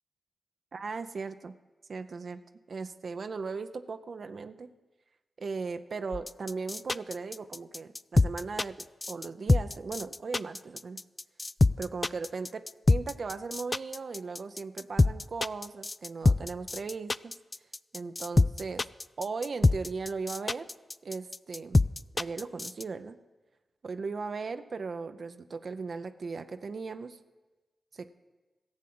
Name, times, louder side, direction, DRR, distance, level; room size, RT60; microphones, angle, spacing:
voice 1, 0.7-1.6 1.9-2.4 2.7-4.7 5.4-11.0 11.8-17.3 17.9-18.9 19.2-20.7 21.0-21.8 22.1-23.2 23.8-27.2 27.9-28.1, right 4 dB, 65° right, 9 dB, 0.6 m, -37 dB
sound 1, 6.1-22.8, left 2 dB, 35° left, 0.3 m, -25 dB
13.5 x 7.4 x 7.7 m, 1.2 s
cardioid pair, 45°, 0 cm